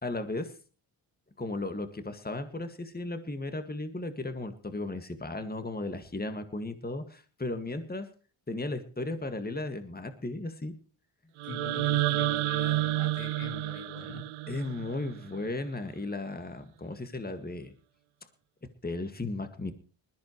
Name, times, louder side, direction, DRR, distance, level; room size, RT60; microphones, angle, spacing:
voice 1, 0.0-0.5 1.4-8.1 8.5-10.7 14.5-17.7 18.8-19.7, left 2 dB, 20° left, 8 dB, 2.0 m, -35 dB
voice 2, 11.4-14.2, left 4 dB, 85° left, 2 dB, 4.2 m, -41 dB
sound 1, 11.4-15.4, right 15 dB, 80° right, 0.6 m, -30 dB
20.5 x 14.0 x 3.2 m, 0.36 s
supercardioid pair, 50°, 50 cm